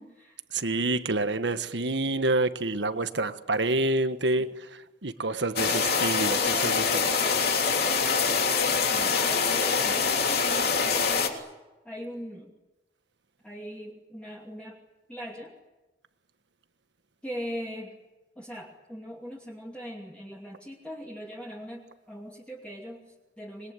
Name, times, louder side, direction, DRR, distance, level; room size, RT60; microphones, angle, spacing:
voice 1, 0.0-0.4 4.4-4.5 6.3-11.5 11.8-12.5 13.4-14.8 15.1-15.5 17.2-18.0 18.4-23.7, equal, 5° left, 2.6 m, -41 dB
voice 2, 0.5-7.1, right 2 dB, 75° right, 1.5 m, -28 dB
sound 1, 5.6-11.3, left 5 dB, 55° left, 3.3 m, -25 dB
26.0 x 22.0 x 9.7 m
head